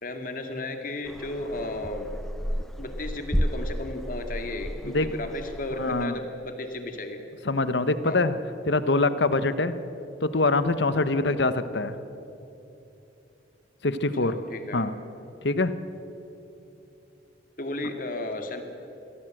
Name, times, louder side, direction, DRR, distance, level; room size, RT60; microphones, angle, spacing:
voice 1, 0.0-2.1 2.8-7.2 8.0-8.2 11.1-11.3 14.2-14.9 17.6-18.6, left 2 dB, 50° left, 5 dB, 2.2 m, -34 dB
sound 1, 1.1-6.1, equal, ahead, 0.5 m, -32 dB
voice 2, 5.8-6.2 7.4-8.4 8.7-9.8 10.2-11.9 13.8-14.4 14.7-14.9 15.4-15.7, left 2 dB, 75° left, 12 dB, 1.1 m, -24 dB
23.5 x 16.0 x 7.8 m, 3.0 s
head